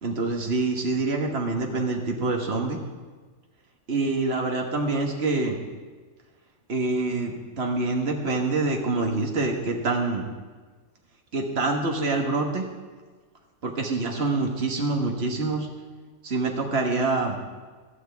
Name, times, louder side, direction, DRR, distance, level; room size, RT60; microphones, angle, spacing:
voice 1, 0.0-2.8 3.9-5.6 6.7-10.3 11.3-12.6 13.6-15.7 16.2-17.4, right 3 dB, 50° right, 1 dB, 1.7 m, -26 dB
16.0 x 12.0 x 3.5 m, 1.4 s
omnidirectional pair, 1.5 m